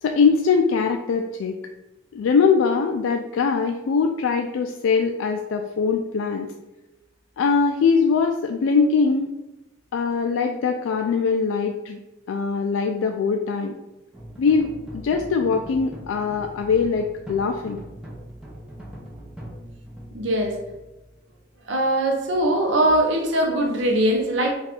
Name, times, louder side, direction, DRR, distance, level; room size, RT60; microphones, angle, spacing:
voice 1, 0.0-1.6 2.1-6.5 7.4-9.3 9.9-12.0 12.3-13.8 14.4-17.8, left 5 dB, 80° left, 4 dB, 0.3 m, -22 dB
sound 1, 14.1-21.4, equal, 5° right, 0.7 m, -41 dB
voice 2, 20.1-20.6 21.7-24.5, right 1 dB, 65° right, 2 dB, 0.7 m, -21 dB
4.2 x 2.4 x 4.2 m, 1.0 s
head